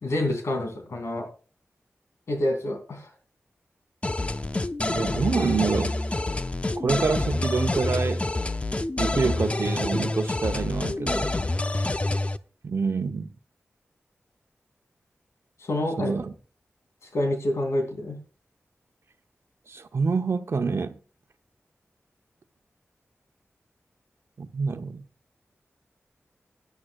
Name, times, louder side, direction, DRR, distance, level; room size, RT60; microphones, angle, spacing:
voice 1, 0.0-1.3 2.3-3.1 15.6-16.1 17.1-18.2, left 1 dB, 90° left, 2.8 m, -27 dB
sound 1, 4.0-12.4, left 2 dB, 25° left, 0.5 m, -27 dB
voice 2, 4.8-6.0 6.8-8.3 9.0-11.3 12.6-13.3 16.0-16.3 19.7-21.0 24.4-25.0, right 4 dB, 70° right, 0.9 m, -27 dB
16.5 x 10.0 x 2.4 m
wide cardioid pair, 95°, 5 cm